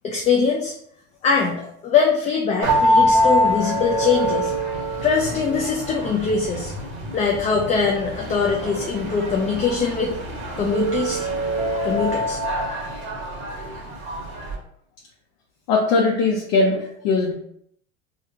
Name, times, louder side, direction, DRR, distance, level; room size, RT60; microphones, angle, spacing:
voice 1, 0.0-0.7 1.2-4.5 5.0-6.7 7.1-10.1 10.6-11.2 11.8-12.4, left 5 dB, 20° left, 0 dB, 0.3 m, -22 dB
sound 1, 2.6-14.5, equal, 35° right, 1.3 m, -24 dB
voice 2, 15.7-17.3, left 3 dB, 60° left, -1 dB, 0.6 m, -20 dB
3.3 x 2.3 x 2.8 m, 0.71 s
hypercardioid pair, 90°, 36 cm